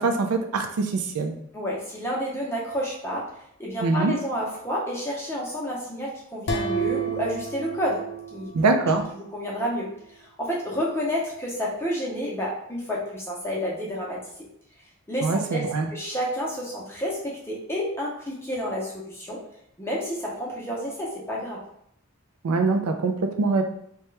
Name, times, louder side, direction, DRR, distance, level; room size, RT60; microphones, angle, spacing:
voice 1, 0.0-1.4 3.8-4.1 8.5-9.0 15.2-15.9 22.4-23.6, right 3 dB, 90° right, 5 dB, 0.4 m, -23 dB
voice 2, 1.5-3.3 3.6-8.0 8.3-8.5 9.1-9.9 10.2-14.2 15.1-15.6 15.9-19.4 19.8-21.6, equal, 10° left, -4 dB, 0.6 m, -30 dB
sound 1, 6.5-9.2, right 4 dB, 50° left, 0.5 m, -31 dB
2.8 x 2.2 x 3.2 m, 0.72 s
head